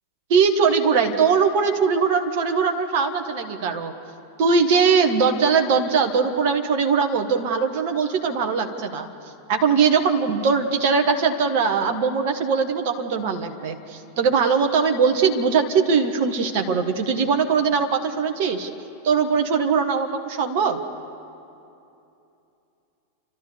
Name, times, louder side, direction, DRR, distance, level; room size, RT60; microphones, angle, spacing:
voice 1, 0.3-3.9 4.4-9.1 9.5-18.7 19.0-20.8, right 5 dB, 50° right, 6 dB, 1.4 m, -21 dB
30.0 x 12.5 x 7.0 m, 2.7 s
figure-of-eight pair, 90°, 0 cm